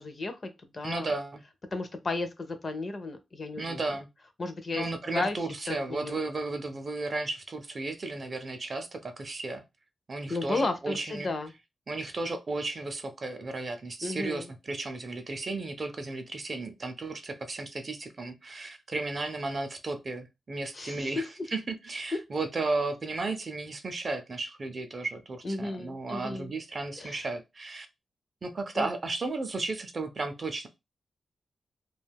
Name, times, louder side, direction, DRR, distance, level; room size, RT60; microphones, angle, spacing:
voice 1, 0.0-1.1 1.7-3.8 4.4-4.8 5.1-5.4 5.7-6.2 10.3-11.5 14.0-14.5 20.7-21.2 22.1-22.2 25.4-26.5 27.0-27.2 28.8-28.9, left 3 dB, 30° left, 0.4 m, -33 dB
voice 2, 0.8-1.4 3.6-4.1 4.7-9.6 10.1-11.3 11.9-27.9 28.4-30.7, right 3 dB, 30° right, 0.4 m, -34 dB
2.4 x 2.2 x 3.3 m
wide cardioid pair, 180°, 0 cm